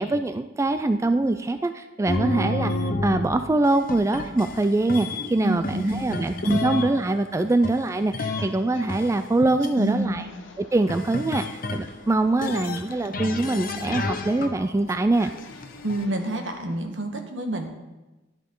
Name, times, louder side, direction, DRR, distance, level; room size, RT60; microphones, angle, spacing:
voice 1, 0.0-2.7 3.0-10.2 10.6-15.3, right 2 dB, 15° right, 9 dB, 0.3 m, -23 dB
sound 1, 2.1-5.3 5.6-6.9 7.6-8.5 8.9-9.7 10.9-11.9 12.4-14.5 14.9-16.0, left 2 dB, 50° left, 0.9 m, -30 dB
voice 2, 5.4-6.9 9.8-10.3 15.8-17.7, right 1 dB, 70° right, 5 dB, 1.4 m, -29 dB
sound 2, 5.6-16.8, left 2 dB, 90° left, 1.6 m, -49 dB
12.0 x 10.5 x 3.8 m, 1.1 s
head